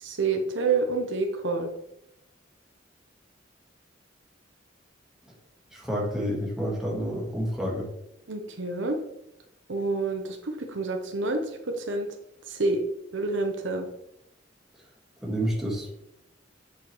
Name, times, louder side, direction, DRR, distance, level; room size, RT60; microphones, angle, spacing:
voice 1, 0.0-1.7 8.3-9.0 9.7-11.4 11.9-12.1 12.5-12.8 13.1-13.9, right 3 dB, 75° right, 4 dB, 0.8 m, -28 dB
voice 2, 5.7-7.9 15.2-15.9, equal, ahead, -4 dB, 1.8 m, -29 dB
8.3 x 5.0 x 3.1 m, 0.80 s
head